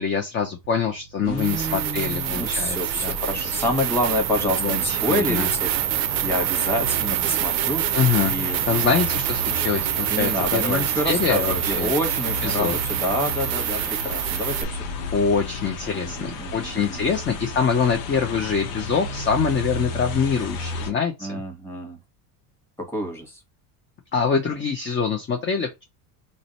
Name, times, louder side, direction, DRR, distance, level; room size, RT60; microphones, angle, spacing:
voice 1, 0.0-2.8 3.0-3.1 3.4-3.5 4.6-5.5 7.9-11.9 12.4-12.7 15.1-21.4 24.1-25.8, left 6 dB, 25° left, 0.5 m, -24 dB
sound 1, 0.6-0.7 1.4-14.6, right 13 dB, 60° right, 0.5 m, -26 dB
voice 2, 1.2-7.9 8.2-8.8 10.1-15.1 15.9-17.0 21.2-22.0 22.8-23.4, left 1 dB, 5° left, 1.2 m, -28 dB
sound 2, 1.3-20.9, left 3 dB, 85° left, 0.8 m, -34 dB
2.6 x 2.1 x 3.9 m
supercardioid pair, 95°, 50 cm